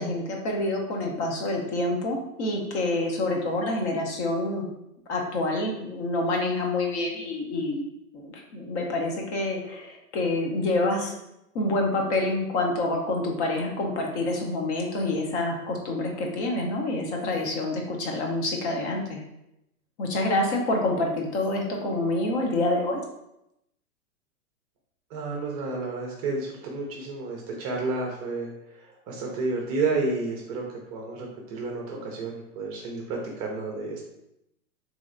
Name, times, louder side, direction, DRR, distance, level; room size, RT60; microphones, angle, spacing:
voice 1, 0.0-4.7 5.1-7.8 8.1-11.1 11.5-19.2 20.0-23.0, left 2 dB, 50° left, 1 dB, 0.8 m, -27 dB
voice 2, 25.1-30.7 30.9-34.0, right 3 dB, 30° right, 0 dB, 0.5 m, -31 dB
3.0 x 2.8 x 2.5 m, 0.85 s
hypercardioid pair, 125°, 43 cm